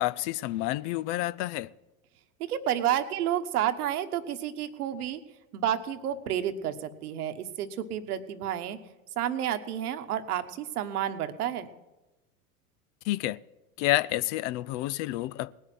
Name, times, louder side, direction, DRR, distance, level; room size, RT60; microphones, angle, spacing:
voice 1, 0.0-1.7 13.1-13.4 13.8-15.5, left 17 dB, 55° left, 0.6 m, -29 dB
voice 2, 2.4-5.2 5.5-8.8 9.2-11.7, right 10 dB, 80° right, 1.3 m, -30 dB
19.0 x 6.4 x 9.1 m
hypercardioid pair, 95°, 44 cm